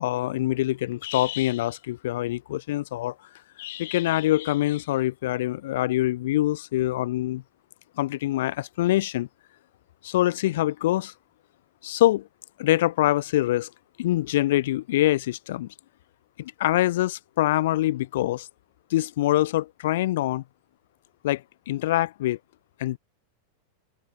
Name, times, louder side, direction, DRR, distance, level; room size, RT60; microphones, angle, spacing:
voice 1, 0.0-3.1 3.6-7.4 8.0-9.3 10.0-11.1 11.8-12.2 12.6-13.7 14.0-15.7 16.4-18.5 18.9-20.4 21.2-21.4 21.7-22.4 22.8-23.0, left 15 dB, 55° left, 0.3 m, -24 dB
figure-of-eight pair, 90°, 0 cm